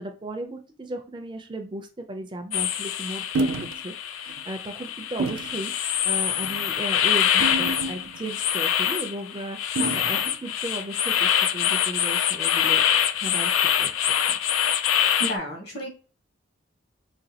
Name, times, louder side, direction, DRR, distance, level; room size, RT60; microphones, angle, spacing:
voice 1, 0.0-12.8 13.1-14.4, right 1 dB, 25° right, 4 dB, 0.4 m, -36 dB
sound 1, 2.5-15.4, left 9 dB, 85° left, 0.4 m, -25 dB
sound 2, 3.3-3.8 4.3-4.4 5.2-5.6 6.3-6.6 7.4-8.3 9.8-10.3, right 3 dB, 90° right, 0.3 m, -29 dB
voice 2, 15.2-15.9, right 1 dB, 55° left, 1 dB, 1.3 m, -32 dB
4.9 x 2.3 x 2.8 m, 0.36 s
head